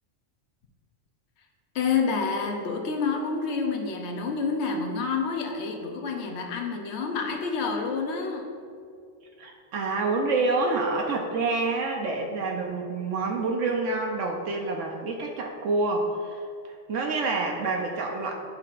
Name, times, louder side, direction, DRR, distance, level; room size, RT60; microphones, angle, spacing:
voice 1, 1.7-8.5, left 5 dB, 65° left, 3 dB, 1.0 m, -28 dB
voice 2, 9.4-16.4 16.7-18.3, right 3 dB, 75° right, 1 dB, 1.0 m, -27 dB
10.5 x 5.8 x 2.5 m, 2.3 s
omnidirectional pair, 1.3 m